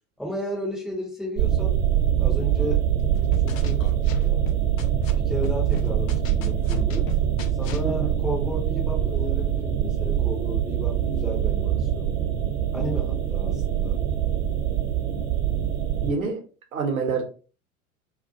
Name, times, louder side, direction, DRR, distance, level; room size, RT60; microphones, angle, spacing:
voice 1, 0.2-1.8 2.2-2.9 3.4-3.9 4.2-4.5 5.1-7.1 7.6-12.1 12.7-14.0, equal, ahead, -2 dB, 0.4 m, -33 dB
sound 1, 1.4-16.1, right 10 dB, 45° right, 0.6 m, -24 dB
sound 2, 3.1-5.1 5.4-7.9, left 6 dB, 65° left, 0.5 m, -36 dB
voice 2, 15.5-16.4 16.7-17.2, right 4 dB, 75° right, 3 dB, 0.8 m, -28 dB
2.3 x 2.2 x 2.6 m, 0.36 s
figure-of-eight pair, 80°, 43 cm